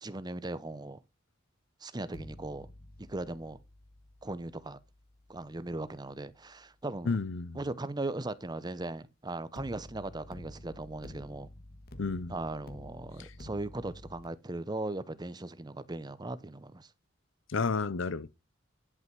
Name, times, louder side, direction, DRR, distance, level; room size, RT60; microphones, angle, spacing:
voice 1, 0.0-1.0 1.8-2.7 3.0-3.6 4.2-4.8 5.3-7.2 7.5-11.5 12.3-16.9, right 2 dB, 20° right, 0.7 m, -38 dB
sound 1, 2.1-7.2 9.6-14.3, left 1 dB, 50° left, 1.5 m, -51 dB
voice 2, 7.1-7.6 12.0-12.3 17.5-18.3, left 4 dB, 70° left, 0.6 m, -31 dB
11.0 x 5.6 x 6.0 m
head